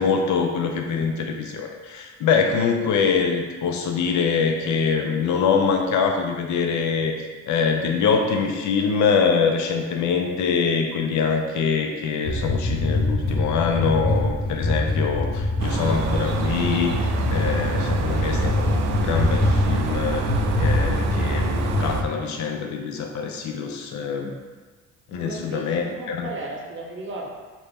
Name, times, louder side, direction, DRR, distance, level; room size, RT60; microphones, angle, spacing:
voice 1, 0.0-7.1 7.5-24.3 25.1-26.3, left 5 dB, 70° left, 3 dB, 0.6 m, -24 dB
sound 1, 12.2-22.0, left 2 dB, 30° left, 0.6 m, -24 dB
sound 2, 15.6-22.0, right 6 dB, 60° right, 0.4 m, -28 dB
voice 2, 25.1-27.3, right 2 dB, 40° right, -1 dB, 0.8 m, -35 dB
3.0 x 2.6 x 3.5 m, 1.3 s
cardioid pair, 90°, 30 cm